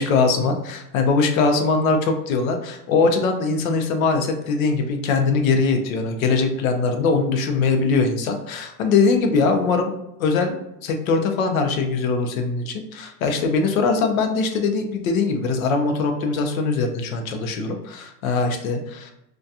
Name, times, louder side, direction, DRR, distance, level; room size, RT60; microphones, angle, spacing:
voice 1, 0.0-9.9 10.2-10.6 10.8-19.1, left 4 dB, 60° left, 5 dB, 0.5 m, -21 dB
2.7 x 2.2 x 2.3 m, 0.86 s
supercardioid pair, 175°, 50 cm